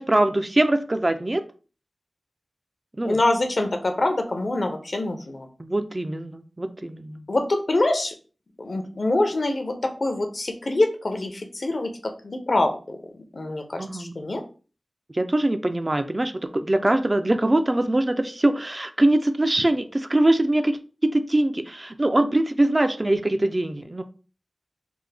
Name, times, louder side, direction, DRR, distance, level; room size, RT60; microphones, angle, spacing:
voice 1, 0.0-1.4 3.0-3.2 5.6-7.2 13.8-14.1 15.1-24.0, right 1 dB, 30° right, 8 dB, 0.3 m, -23 dB
voice 2, 3.0-5.5 7.3-8.1 8.6-11.9 12.2-13.0 13.3-14.4, left 2 dB, 60° left, 5 dB, 0.6 m, -25 dB
3.4 x 2.0 x 3.3 m, 0.37 s
wide cardioid pair, 65°, 0 cm